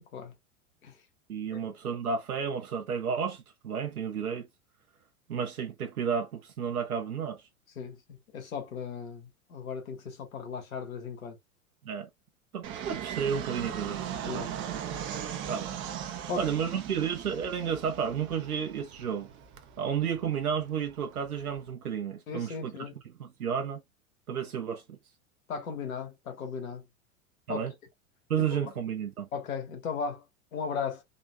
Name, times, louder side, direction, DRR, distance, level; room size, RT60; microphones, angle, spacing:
voice 1, 1.3-4.5 5.3-7.4 11.9-12.1 12.5-14.0 14.3-14.5 15.5-15.8 16.4-19.3 19.8-22.9 23.2-23.8 24.3-25.0 27.5-27.7 28.3-29.3, right 7 dB, 85° right, 0.7 m, -32 dB
voice 2, 8.3-11.4 14.2-14.5 16.3-16.5 22.3-22.9 25.5-26.8 27.5-27.6 28.5-28.6 29.3-30.2 30.5-31.0, left 6 dB, 70° left, 1.3 m, -36 dB
Fixed-wing aircraft airplane, 12.6-21.7, right 9 dB, 30° right, 0.7 m, -39 dB
3.8 x 2.7 x 2.2 m
figure-of-eight pair, 90°, 43 cm